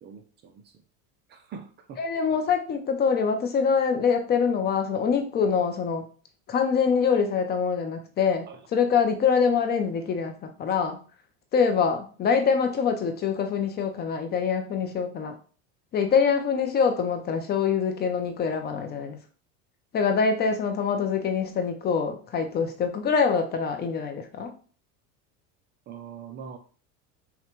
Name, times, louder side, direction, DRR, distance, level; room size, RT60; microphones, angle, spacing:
voice 1, 0.0-0.7 1.3-2.0 8.5-8.6 25.9-26.6, right 7 dB, 30° right, 6 dB, 0.4 m, -42 dB
voice 2, 2.0-6.0 6.5-8.5 8.7-11.0 11.5-15.3 15.9-19.2 19.9-24.5, left 6 dB, 25° left, 6 dB, 0.4 m, -24 dB
5.7 x 2.2 x 3.0 m, 0.40 s
supercardioid pair, 140°, 37 cm